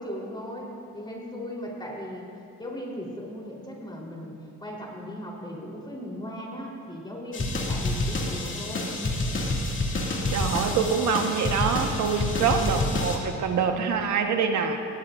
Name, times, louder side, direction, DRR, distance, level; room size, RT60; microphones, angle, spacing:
voice 1, 0.0-2.3 2.6-8.9 12.3-12.7, equal, 15° left, -2 dB, 4.1 m, -38 dB
sound 1, 7.3-13.2, left 2 dB, 40° left, 2.4 m, -28 dB
voice 2, 10.3-14.8, right 6 dB, 70° right, 4 dB, 1.5 m, -25 dB
18.5 x 18.0 x 2.7 m, 2.6 s
cardioid pair, 90°, 30 cm